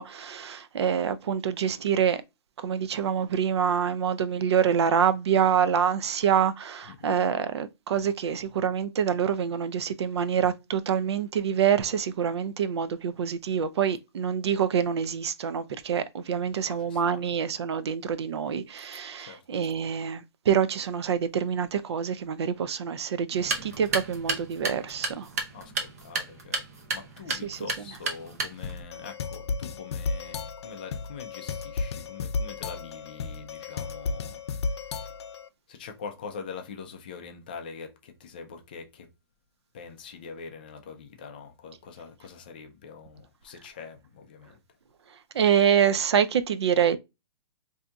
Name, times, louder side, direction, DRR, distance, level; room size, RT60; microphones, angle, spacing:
voice 1, 0.0-2.2 2.6-25.3 27.3-27.6 45.3-47.0, right 8 dB, 85° right, 0.4 m, -26 dB
voice 2, 6.9-7.3 16.7-17.2 19.2-19.4 25.5-26.6 26.9-34.4 34.7-34.9 35.7-39.1 39.7-44.6, left 5 dB, 20° left, 0.3 m, -43 dB
sound 1, 23.3-28.8, right 4 dB, 35° right, 0.7 m, -33 dB
sound 2, 28.6-35.5, left 4 dB, 90° left, 0.4 m, -33 dB
3.8 x 2.7 x 2.2 m
hypercardioid pair, 180°, 14 cm